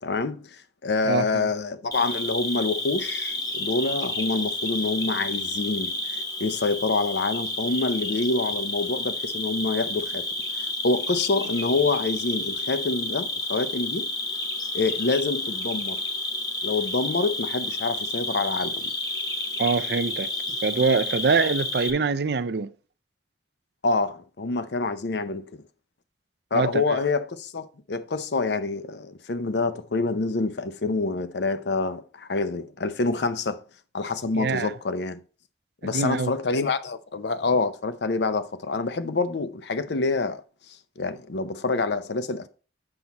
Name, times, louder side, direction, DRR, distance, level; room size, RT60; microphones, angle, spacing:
voice 1, 0.0-6.0 6.4-10.3 10.6-14.1 14.7-16.0 16.6-18.8 23.8-25.6 26.5-33.6 33.9-35.2 35.8-40.4 41.0-42.5, left 3 dB, 75° left, 0.6 m, -27 dB
voice 2, 1.0-1.5 19.6-20.3 20.6-22.7 26.5-27.0 34.3-34.7 35.8-36.3, right 4 dB, 65° right, 0.5 m, -24 dB
Cricket, 1.9-21.9, left 2 dB, 20° left, 1.1 m, -30 dB
7.8 x 5.8 x 4.1 m
head